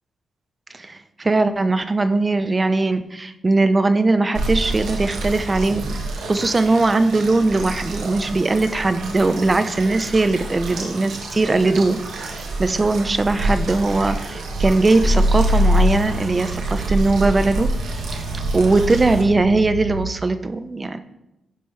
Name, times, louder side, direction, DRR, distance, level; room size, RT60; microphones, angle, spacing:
voice 1, 0.7-5.8 6.3-17.7 18.1-18.2 18.5-21.0, right 3 dB, 30° right, 11 dB, 0.5 m, -20 dB
sound 1, 4.3-19.2, right 2 dB, 85° right, 1.3 m, -28 dB
sound 2, 15.0-20.0, equal, 40° left, 1.0 m, -23 dB
9.9 x 5.3 x 3.3 m, 0.90 s
cardioid pair, 80°, 0 cm